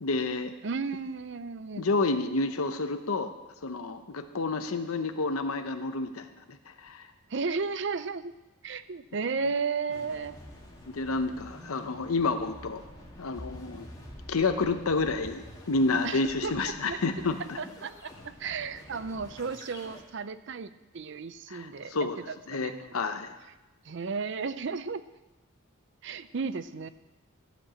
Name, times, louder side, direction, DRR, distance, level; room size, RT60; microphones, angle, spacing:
voice 1, 0.0-0.5 1.8-3.3 3.6-7.1 9.4-9.5 10.9-12.8 13.2-13.9 14.3-17.6 21.5-22.2 22.5-23.3, left 3 dB, 85° left, 8 dB, 0.8 m, -29 dB
voice 2, 0.6-1.9 7.3-8.3 8.6-10.4 16.0-17.0 17.6-18.1 18.4-21.9 22.3-23.0 23.9-25.0 26.0-26.9, right 5 dB, 55° right, 14 dB, 0.5 m, -34 dB
sound 1, 9.9-20.0, equal, 15° left, 1.8 m, -47 dB
15.0 x 5.3 x 8.5 m, 1.0 s
head